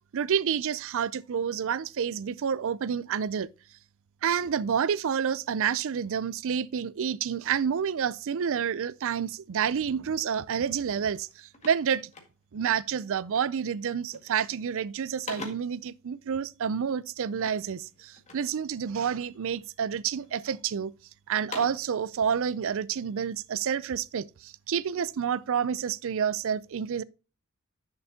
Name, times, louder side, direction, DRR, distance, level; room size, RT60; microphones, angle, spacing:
voice 1, 0.1-3.5 4.2-12.1 12.5-20.9 21.3-27.0, right 7 dB, 65° right, 0.4 m, -29 dB
sound 1, 10.7-10.9 11.1-12.7 13.3-13.7 14.0-14.5 14.8-15.9 17.4-18.6 19.1-19.7 20.2-20.9 21.3-22.0, left 3 dB, 35° left, 1.9 m, -44 dB
10.5 x 6.7 x 2.8 m
head